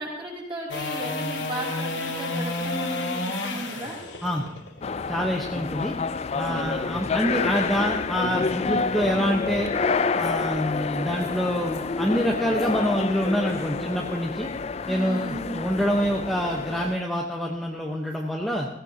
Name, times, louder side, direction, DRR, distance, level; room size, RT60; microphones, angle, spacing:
voice 1, 0.0-4.0 6.4-6.7 14.8-15.6, right 1 dB, 25° right, -4 dB, 5.6 m, -35 dB
sound 1, 0.7-6.8 13.4-13.5, left 2 dB, 70° left, 1.8 m, -31 dB
sound 2, 4.8-17.0, left 4 dB, 35° left, 0.4 m, -28 dB
voice 2, 5.1-5.9 6.3-9.7 10.2-14.5 14.9-18.7, equal, ahead, -2 dB, 1.0 m, -26 dB
16.5 x 16.5 x 2.8 m, 0.80 s
head